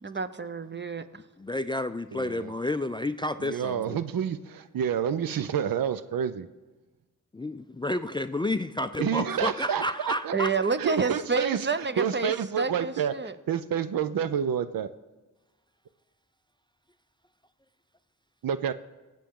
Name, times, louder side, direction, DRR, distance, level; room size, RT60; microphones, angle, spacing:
voice 1, 0.0-1.1 10.3-13.4, right 4 dB, 30° right, 12 dB, 0.8 m, -29 dB
voice 2, 1.4-4.0 7.3-10.5, left 1 dB, 15° left, 12 dB, 0.3 m, -30 dB
voice 3, 2.1-2.5 3.4-6.5 9.0-10.3 10.8-14.9 18.4-18.7, right 8 dB, 75° right, 13 dB, 0.5 m, -29 dB
19.5 x 7.7 x 3.7 m, 1.2 s
cardioid pair, 45°, 35 cm